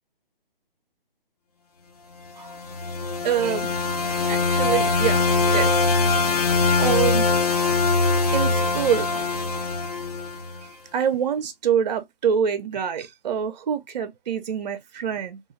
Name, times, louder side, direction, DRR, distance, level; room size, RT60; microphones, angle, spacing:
sound 1, 2.5-10.6, left 3 dB, 40° left, 0.5 m, -22 dB
voice 1, 3.2-3.7 4.3-5.9 6.3-7.3 8.3-9.3 10.9-15.4, right 8 dB, 45° right, 0.5 m, -26 dB
2.3 x 2.3 x 2.9 m
figure-of-eight pair, 140°, 29 cm